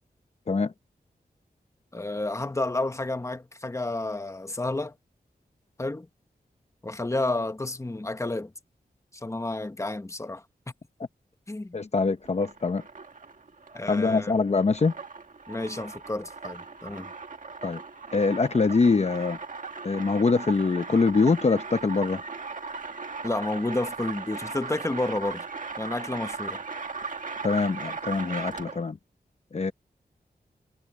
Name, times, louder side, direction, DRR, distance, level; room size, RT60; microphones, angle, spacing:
voice 1, 1.9-4.9 5.8-6.1 6.8-8.5 9.2-10.4 11.5-11.8 13.7-14.4 15.5-17.1 23.2-25.4 25.8-26.6, left 2 dB, 20° left, 1.1 m, -30 dB
voice 2, 11.7-12.8 13.9-14.9 17.6-17.8 18.1-19.4 19.8-22.2 27.4-29.0 29.5-29.7, left 4 dB, 40° left, 0.8 m, -24 dB
sound 1, 12.2-28.9, right 4 dB, 55° right, 1.8 m, -38 dB
wide cardioid pair, 105°, 16 cm